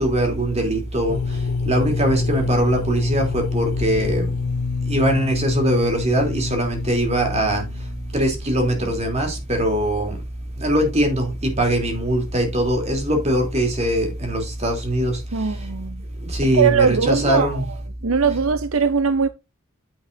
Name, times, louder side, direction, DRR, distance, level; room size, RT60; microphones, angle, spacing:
voice 1, 0.0-4.3 4.8-7.6 8.1-10.2 10.6-15.6 16.2-17.6, right 1 dB, 30° right, 3.3 m, -21 dB
sound 1, 1.1-8.8, left 4 dB, 65° left, 0.7 m, -27 dB
voice 2, 15.3-16.0 16.5-17.5 18.0-19.3, right 5 dB, 70° right, 0.7 m, -20 dB
9.6 x 7.8 x 2.7 m
head